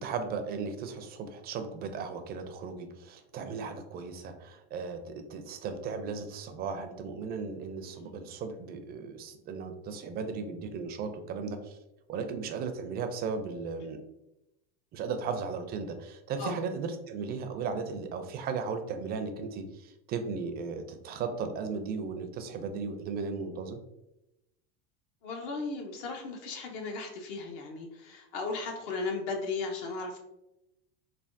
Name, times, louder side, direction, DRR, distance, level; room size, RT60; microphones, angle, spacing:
voice 1, 0.0-11.8 12.1-14.0 14.9-23.8, right 5 dB, 30° right, 7 dB, 0.4 m, -36 dB
voice 2, 25.2-30.2, left 3 dB, 65° left, 2 dB, 0.7 m, -36 dB
3.3 x 2.2 x 2.5 m, 0.90 s
supercardioid pair, 115°, 30 cm